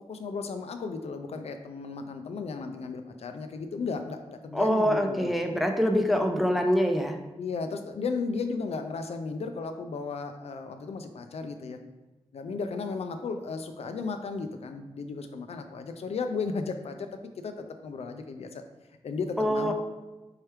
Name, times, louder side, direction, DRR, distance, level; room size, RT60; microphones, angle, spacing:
voice 1, 0.1-5.3 7.4-11.8 12.3-18.6 19.0-19.7, left 4 dB, 65° left, 7 dB, 0.4 m, -35 dB
voice 2, 4.5-7.2 19.4-19.7, equal, ahead, 4 dB, 0.5 m, -25 dB
4.5 x 3.2 x 3.0 m, 1.1 s
wide cardioid pair, 85°, 11 cm